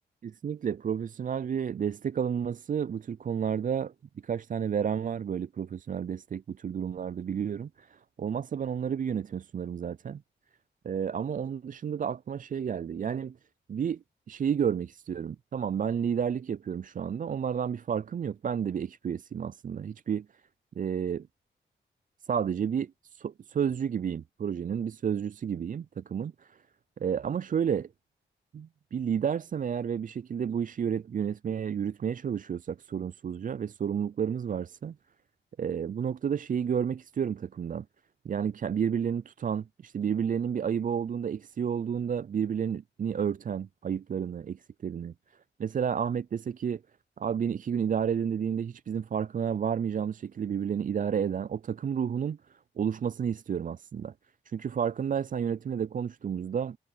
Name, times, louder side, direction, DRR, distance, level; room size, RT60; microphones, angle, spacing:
voice 1, 0.2-3.9 4.2-10.2 10.8-13.4 13.7-20.3 20.8-21.3 22.3-26.6 27.0-27.9 28.5-35.0 35.6-37.9 38.2-45.1 45.6-46.8 47.2-54.1 54.5-56.8, right 7 dB, 40° right, 0.4 m, -31 dB
cardioid pair, 50°, 20 cm